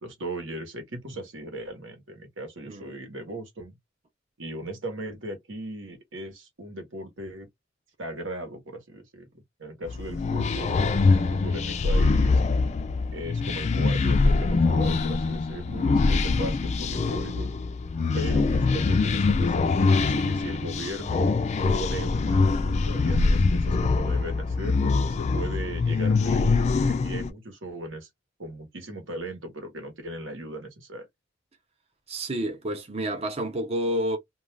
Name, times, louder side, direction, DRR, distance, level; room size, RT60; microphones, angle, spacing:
voice 1, 0.0-3.8 4.4-7.5 8.0-9.3 9.6-10.8 11.1-12.4 13.1-17.5 18.1-21.3 21.7-28.1 28.4-31.1, right 1 dB, 80° right, 1.1 m, -38 dB
sound 1, 9.9-27.3, left 3 dB, 35° left, 0.3 m, -24 dB
voice 2, 32.1-34.2, right 1 dB, 35° right, 0.6 m, -29 dB
2.4 x 2.3 x 3.2 m
head